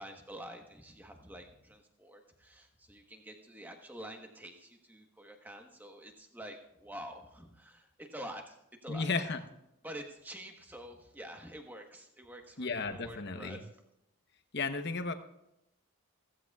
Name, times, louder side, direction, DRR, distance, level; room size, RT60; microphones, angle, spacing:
voice 1, 0.0-8.6 8.8-9.1 9.8-13.7, right 1 dB, 10° right, 3 dB, 1.2 m, -47 dB
voice 2, 8.9-9.4 12.6-13.6 14.5-15.1, left 4 dB, 50° left, 8 dB, 0.9 m, -34 dB
16.0 x 15.0 x 2.4 m, 0.83 s
head